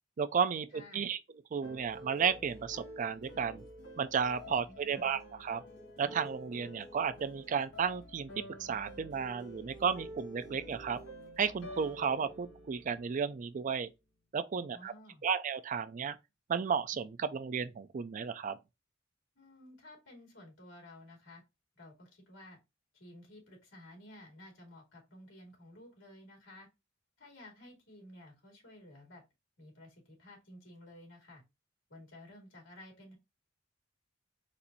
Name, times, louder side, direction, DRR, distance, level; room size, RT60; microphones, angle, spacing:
voice 1, 0.2-1.2 1.5-3.6 4.0-5.6 6.0-8.3 8.6-11.0 11.4-13.9 14.3-14.9 15.2-16.2 16.5-18.6, right 6 dB, 40° right, 0.4 m, -33 dB
voice 2, 0.7-1.1 4.7-5.2 14.7-15.2 19.3-21.4 21.7-22.6 22.9-26.7 27.2-29.2 29.6-31.4 31.9-33.2, left 1 dB, 90° left, 2.4 m, -54 dB
sound 1, 1.6-13.7, equal, 70° left, 1.9 m, -49 dB
4.3 x 2.6 x 4.0 m
head